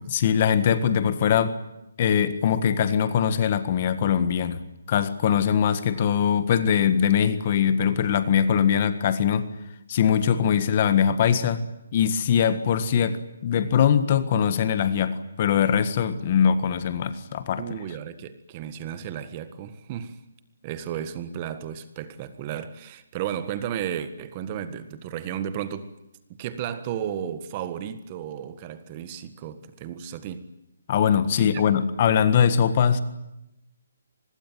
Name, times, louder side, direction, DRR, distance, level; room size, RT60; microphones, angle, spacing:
voice 1, 0.1-1.6 2.0-4.6 4.9-9.5 9.9-11.6 11.9-17.6 30.9-33.0, left 8 dB, 35° left, 1.6 m, -22 dB
voice 2, 17.6-20.2 20.6-25.9 26.3-30.5 31.4-31.6, right 9 dB, 25° right, 1.6 m, -34 dB
24.5 x 21.0 x 9.4 m
hypercardioid pair, 165°, 0 cm